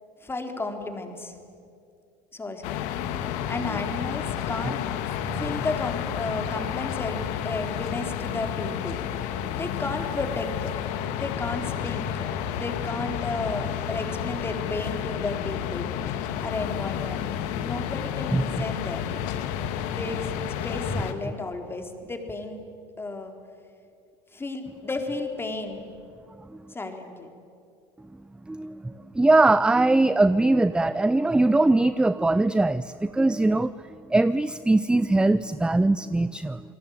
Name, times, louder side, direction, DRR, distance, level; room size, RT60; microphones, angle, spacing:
voice 1, 0.2-1.4 2.3-2.8 3.5-4.8 5.1-9.0 9.3-10.7 11.1-12.1 12.5-15.9 16.4-17.3 17.6-19.2 19.9-20.3 20.6-22.7 23.0-23.3 24.3-25.9 26.7-27.3, left 2 dB, 15° left, 5 dB, 3.8 m, -33 dB
sound 1, 2.6-21.1, left 9 dB, 70° left, 1.9 m, -31 dB
voice 2, 28.5-33.7 34.1-36.6, right 2 dB, 5° right, 15 dB, 0.6 m, -21 dB
28.5 x 20.0 x 9.6 m, 2.4 s
hypercardioid pair, 90°, 13 cm